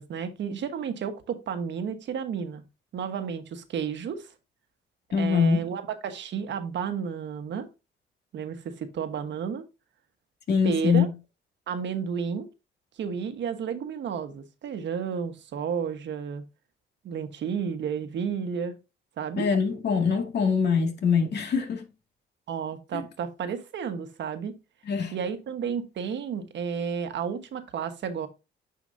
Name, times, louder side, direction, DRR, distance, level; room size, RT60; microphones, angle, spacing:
voice 1, 0.0-2.6 2.9-4.3 5.2-7.7 8.3-9.6 10.6-11.1 11.7-12.5 13.0-16.4 17.0-18.7 19.2-19.5 22.5-24.6 25.1-28.3, right 7 dB, 65° right, 1.3 m, -32 dB
voice 2, 5.1-5.6 10.5-11.1 19.3-21.9 22.9-23.0 24.9-25.2, left 6 dB, 60° left, 2.2 m, -23 dB
9.5 x 5.0 x 2.7 m
cardioid pair, 90°, 20 cm